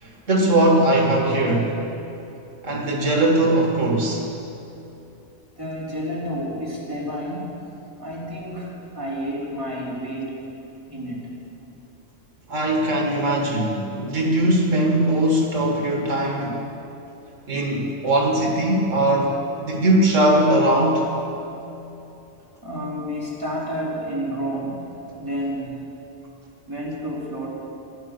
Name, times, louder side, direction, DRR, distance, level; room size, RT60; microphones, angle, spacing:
voice 1, 0.0-1.8 2.6-4.3 12.5-16.6 17.5-21.1, right 1 dB, 85° right, 1 dB, 2.0 m, -20 dB
voice 2, 5.6-7.6 8.0-10.4 10.9-11.3 22.6-25.8 26.7-27.5, equal, 15° right, -6 dB, 3.4 m, -30 dB
16.0 x 10.5 x 6.6 m, 2.9 s
omnidirectional pair, 1.3 m